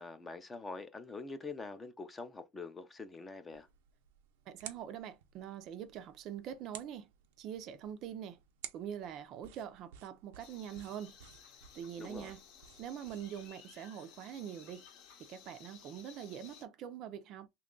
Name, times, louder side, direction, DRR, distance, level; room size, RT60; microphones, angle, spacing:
voice 1, 0.0-3.7 12.0-12.3, left 3 dB, 15° left, 0.4 m, -45 dB
sound 1, 3.5-13.5, right 10 dB, 90° right, 0.6 m, -55 dB
voice 2, 4.5-7.1 7.4-8.4 8.7-11.1 11.7-12.4 12.8-14.8 15.2-17.5, right 9 dB, 45° right, 0.4 m, -44 dB
sound 2, 10.4-16.7, left 7 dB, 55° left, 0.8 m, -57 dB
3.0 x 2.3 x 3.7 m
supercardioid pair, 150°, 0 cm